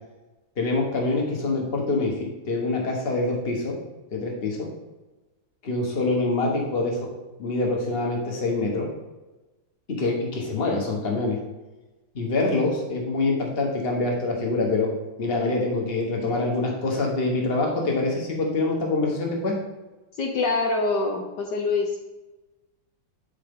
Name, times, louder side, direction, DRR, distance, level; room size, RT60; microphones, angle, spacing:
voice 1, 0.6-2.1 2.4-3.7 4.1-4.7 5.6-7.0 7.4-8.9 9.9-11.4 12.1-14.9 15.2-19.5, left 2 dB, 35° left, -1 dB, 1.5 m, -25 dB
voice 2, 20.2-22.0, left 3 dB, 65° left, 1 dB, 1.4 m, -25 dB
11.0 x 4.7 x 3.8 m, 1.1 s
omnidirectional pair, 2.1 m